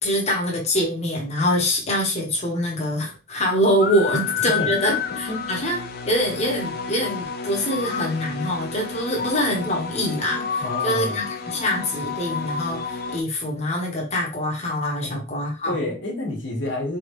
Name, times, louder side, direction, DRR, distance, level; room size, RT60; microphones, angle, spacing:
voice 1, 0.0-4.9 5.5-15.8, equal, 35° left, -2 dB, 1.0 m, -24 dB
sound 1, 3.8-13.2, left 6 dB, 55° left, 0.5 m, -30 dB
voice 2, 10.6-11.2 15.0-15.2 15.6-17.0, left 1 dB, 85° left, -1 dB, 1.4 m, -28 dB
3.7 x 3.5 x 3.0 m, 0.32 s
head